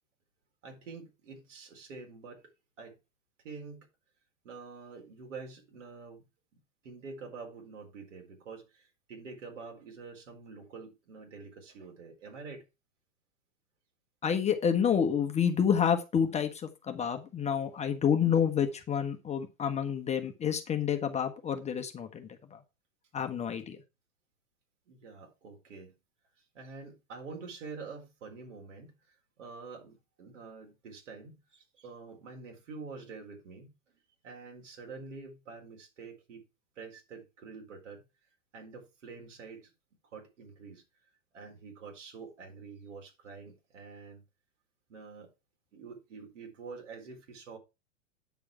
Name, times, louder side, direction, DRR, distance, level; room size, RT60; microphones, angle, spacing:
voice 1, 0.6-2.4 2.8-3.0 3.4-3.9 4.4-6.2 6.8-12.6 24.9-25.9 26.5-33.7 34.2-36.4 36.8-38.0 38.5-39.7 40.0-40.8 41.3-44.2 44.9-45.3 45.7-47.6, right 4 dB, 65° right, 4.3 m, -47 dB
voice 2, 14.2-22.6 23.1-23.8, left 7 dB, 15° left, 1.1 m, -29 dB
9.2 x 6.8 x 4.8 m
figure-of-eight pair, 100°, 39 cm